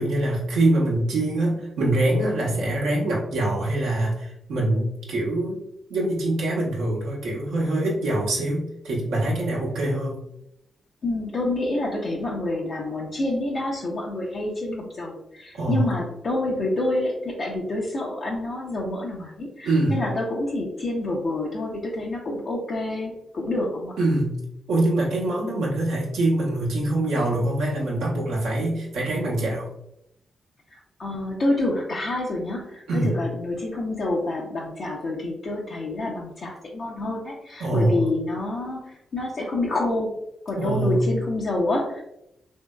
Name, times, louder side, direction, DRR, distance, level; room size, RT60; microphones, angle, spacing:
voice 1, 0.0-5.6 5.9-10.2 15.5-15.9 19.6-20.0 24.0-24.4 24.7-29.7 32.9-33.2 37.6-38.1 40.6-41.1, right 1 dB, 80° right, -3 dB, 0.8 m, -24 dB
voice 2, 11.0-23.9 30.7-40.1 40.5-42.0, left 2 dB, 60° left, -4 dB, 0.5 m, -28 dB
2.9 x 2.6 x 2.2 m, 0.81 s
hypercardioid pair, 40°, 0 cm